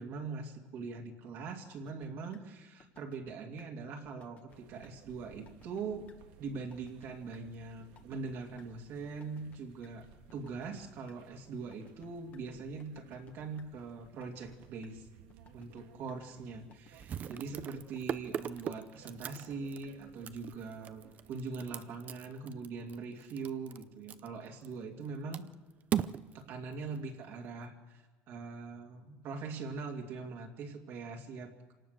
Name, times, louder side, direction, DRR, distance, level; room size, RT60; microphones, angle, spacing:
voice 1, 0.0-6.1 6.4-10.1 10.3-15.1 15.5-21.0 21.3-25.5 26.3-31.7, right 4 dB, 50° right, 1 dB, 2.5 m, -42 dB
sound 1, 1.7-2.1 2.3-2.4 2.8-3.3 3.6-3.7 4.0-4.6 4.8-4.9 5.3-5.8 6.1-6.2 6.5-7.1 7.3-7.4 7.8-8.3 8.6-8.7 9.0-9.6 9.8-9.9 10.3-11.1 11.5-12.4 12.8-13.3 13.6-13.7 14.0-14.6 14.8-14.9 15.3-15.8 16.1-16.2 16.5-17.1 17.3-17.4 17.8-18.3 18.6-18.7 19.0-19.6 19.8-19.9 20.3-20.4, left 7 dB, 30° left, 1.5 m, -60 dB
sound 2, 4.5-21.9, right 7 dB, 85° right, 1.9 m, -60 dB
sound 3, 15.5-15.6 16.0-16.1 16.9-25.1 25.3-27.5, right 9 dB, 30° right, 0.6 m, -39 dB
27.0 x 18.0 x 6.7 m, 1.3 s
cardioid pair, 165°, 5 cm